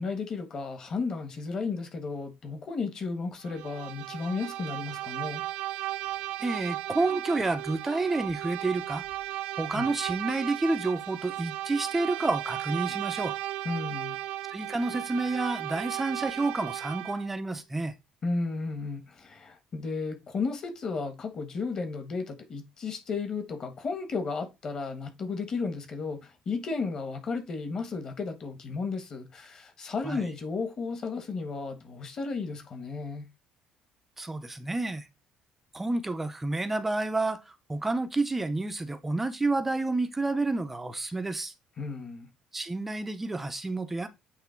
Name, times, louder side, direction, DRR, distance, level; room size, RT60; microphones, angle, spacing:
voice 1, 0.0-5.4 9.7-9.9 13.6-14.2 18.2-33.3 41.8-42.3, left 4 dB, 30° left, 1.3 m, -34 dB
Bowed string instrument, 3.4-17.3, right 14 dB, 75° right, 0.8 m, -35 dB
voice 2, 6.4-9.0 9.6-13.4 14.5-17.9 30.0-30.2 34.2-35.1 35.7-41.5 42.5-44.1, right 2 dB, 10° right, 0.5 m, -29 dB
8.0 x 3.2 x 4.4 m
cardioid pair, 175°, 2 cm